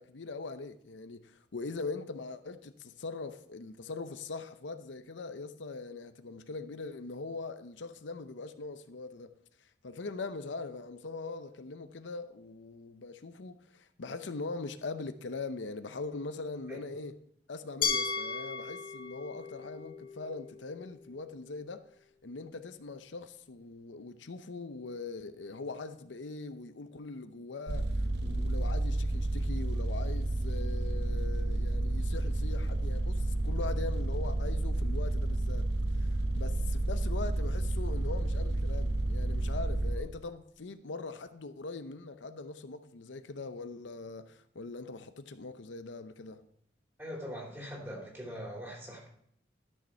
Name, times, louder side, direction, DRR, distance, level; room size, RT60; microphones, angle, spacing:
voice 1, 0.0-9.3 9.8-17.2 17.5-21.9 22.2-35.7 35.9-46.4, left 3 dB, 90° left, 0.7 m, -41 dB
Glass, 17.8-20.7, left 5 dB, 50° left, 1.8 m, -35 dB
sound 1, 27.7-40.0, right 2 dB, 70° right, 0.8 m, -31 dB
voice 2, 47.0-49.1, equal, 10° right, 3.0 m, -42 dB
12.5 x 6.6 x 4.5 m
head